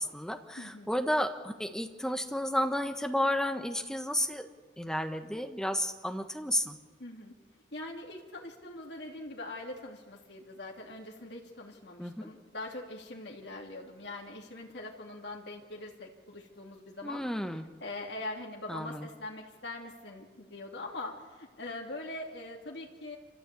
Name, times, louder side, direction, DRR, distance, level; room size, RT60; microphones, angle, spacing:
voice 1, 0.0-4.5 4.8-6.8 12.0-12.2 17.0-17.6 18.7-19.1, left 1 dB, 5° left, 6 dB, 1.4 m, -32 dB
voice 2, 0.6-0.9 7.0-7.3 7.7-17.2 17.8-23.2, left 2 dB, 65° left, 0 dB, 2.9 m, -42 dB
27.0 x 14.5 x 8.5 m, 1.3 s
head